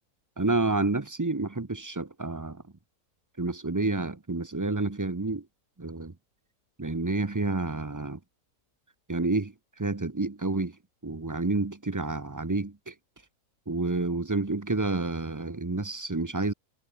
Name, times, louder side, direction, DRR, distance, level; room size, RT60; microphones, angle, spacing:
voice 1, 0.4-2.6 3.4-5.4 5.8-6.1 6.8-8.2 9.1-9.5 9.8-10.7 11.0-12.9 13.7-16.5, right 3 dB, 20° right, 0.6 m, -29 dB
omnidirectional pair, 1.6 m